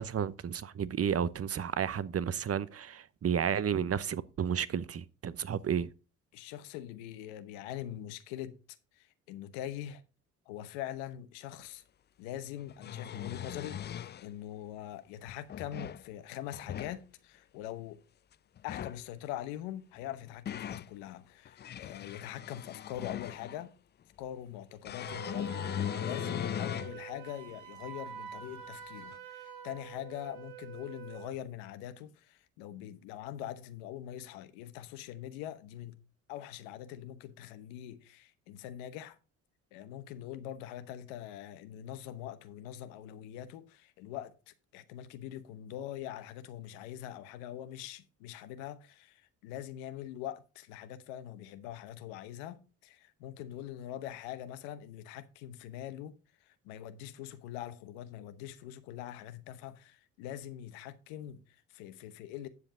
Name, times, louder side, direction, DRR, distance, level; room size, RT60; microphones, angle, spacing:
voice 1, 0.0-5.9, right 8 dB, 40° right, 0.9 m, -32 dB
voice 2, 6.3-8.6 8.9-10.0 10.5-11.8 12.2-18.0 18.6-23.7 24.2-36.0 36.3-39.2 39.7-56.1 56.4-62.5, left 11 dB, 85° left, 1.0 m, -43 dB
sound 1, 11.6-11.7 12.6-14.3 15.3-16.0 16.5-17.0 18.6-19.0 20.0-20.9 21.5-23.6 24.8-27.0 27.5-27.6 29.1-29.2, left 10 dB, 30° left, 0.4 m, -39 dB
Wind instrument woodwind instrument, 25.1-31.4, right 9 dB, 85° right, 1.4 m, -47 dB
9.7 x 7.2 x 3.8 m
hypercardioid pair, 50°, 36 cm